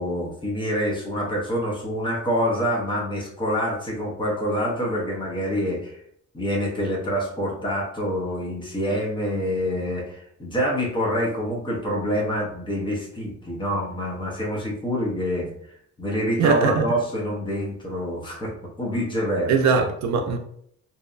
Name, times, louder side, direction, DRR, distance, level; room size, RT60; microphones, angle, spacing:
voice 1, 0.0-6.0 6.3-15.5 16.0-19.5, equal, 15° left, 0.5 m, -26 dB
voice 2, 16.4-16.8 19.5-20.4, right 5 dB, 65° right, 0.4 m, -20 dB
2.7 x 2.1 x 2.4 m
wide cardioid pair, 180°, 30 cm